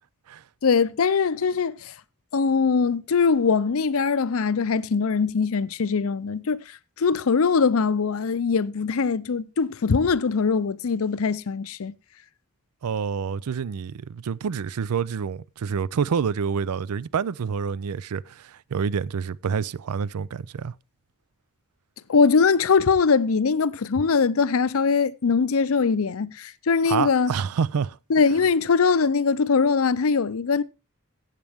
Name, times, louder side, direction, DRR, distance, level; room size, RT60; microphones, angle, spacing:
voice 1, 0.6-1.9 2.3-11.9 22.1-27.3 28.1-30.6, left 5 dB, 70° left, 0.5 m, -22 dB
voice 2, 12.8-20.7 26.9-28.0, right 6 dB, 90° right, 0.4 m, -27 dB
15.5 x 7.5 x 3.5 m
head